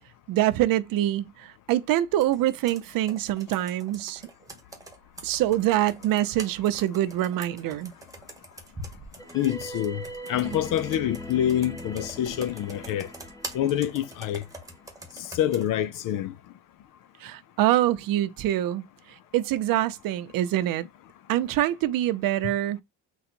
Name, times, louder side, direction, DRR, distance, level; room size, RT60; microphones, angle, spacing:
voice 1, 0.3-4.2 5.2-7.9 17.2-18.8 19.3-20.8 21.3-22.8, right 13 dB, 60° right, 0.7 m, -25 dB
Computer keyboard, 2.2-15.7, right 2 dB, 10° right, 1.2 m, -45 dB
sound 1, 9.2-14.9, equal, 10° left, 0.7 m, -40 dB
voice 2, 9.3-10.0 10.3-13.1 13.5-14.4 15.3-16.3, left 11 dB, 55° left, 0.5 m, -26 dB
3.9 x 2.3 x 4.3 m
cardioid pair, 130°, 39 cm